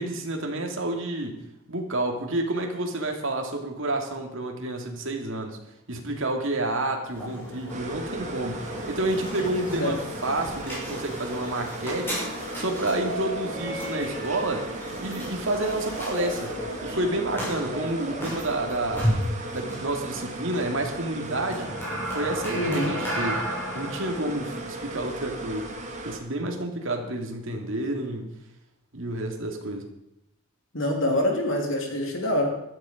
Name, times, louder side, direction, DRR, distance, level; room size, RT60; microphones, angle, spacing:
voice 1, 0.0-1.4 1.7-5.6 5.9-10.0 10.2-12.2 12.5-14.7 15.0-19.1 19.5-21.8 22.1-23.5 23.7-25.7 26.0-28.3 28.9-29.9, right 1 dB, 60° right, 3 dB, 2.7 m, -29 dB
sound 1, 7.1-26.1, equal, 10° left, 6.5 m, -34 dB
sound 2, 7.7-26.2, right 2 dB, 30° right, 2.3 m, -37 dB
voice 2, 22.5-22.9 30.7-32.5, left 1 dB, 60° left, 2 dB, 3.1 m, -25 dB
15.5 x 13.0 x 5.3 m, 0.85 s
head